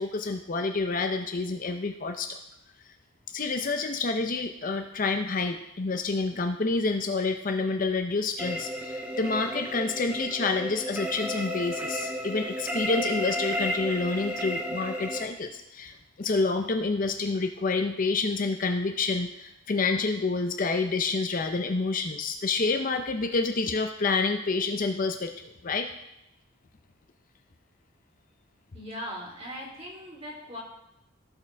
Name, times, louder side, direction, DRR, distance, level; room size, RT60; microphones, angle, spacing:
voice 1, 0.0-2.4 3.3-25.9, left 3 dB, 40° left, 5 dB, 0.5 m, -28 dB
sound 1, 8.4-15.2, equal, 5° right, 1.0 m, -33 dB
voice 2, 28.7-30.6, equal, 30° right, -4 dB, 3.3 m, -39 dB
17.0 x 5.9 x 3.4 m, 0.85 s
head